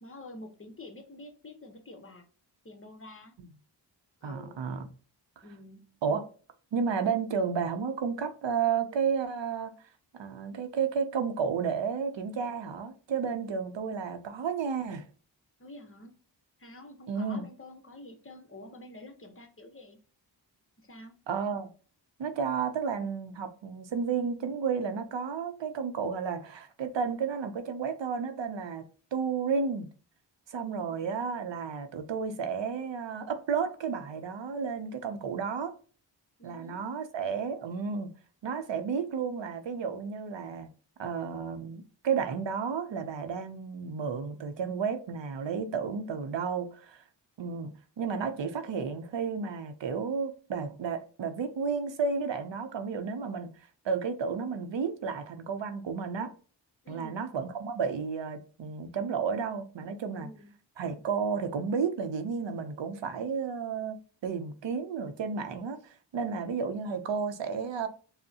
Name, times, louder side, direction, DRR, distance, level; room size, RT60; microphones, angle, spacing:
voice 1, 0.0-2.2 2.6-3.3 4.2-4.6 5.4-5.9 15.6-16.1 16.6-20.0 20.8-21.1 30.9-31.1 36.4-36.9 56.8-57.2 60.2-60.5, left 1 dB, 30° left, 0.8 m, -48 dB
voice 2, 4.2-4.9 6.0-6.3 6.7-9.7 10.2-15.0 17.1-17.5 21.3-21.7 22.2-28.8 29.1-29.9 30.5-35.7 36.4-38.1 38.4-40.7 41.0-47.0 47.4-47.7 48.0-53.5 53.8-56.3 56.9-60.3 60.8-67.9, right 6 dB, 75° right, 0.6 m, -32 dB
5.3 x 2.1 x 2.7 m
cardioid pair, 55°, 45 cm